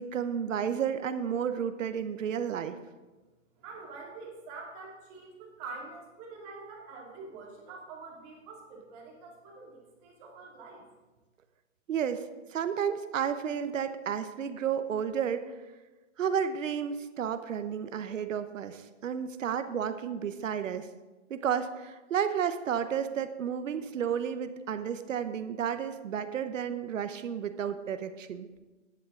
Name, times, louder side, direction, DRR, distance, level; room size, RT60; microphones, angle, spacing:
voice 1, 0.0-2.8 11.9-15.5 16.2-20.9 21.3-28.5, right 8 dB, 90° right, 10 dB, 0.9 m, -32 dB
voice 2, 3.6-10.8, right 4 dB, 30° right, -2 dB, 2.6 m, -46 dB
11.5 x 10.0 x 3.8 m, 1.2 s
hypercardioid pair, 160°, 37 cm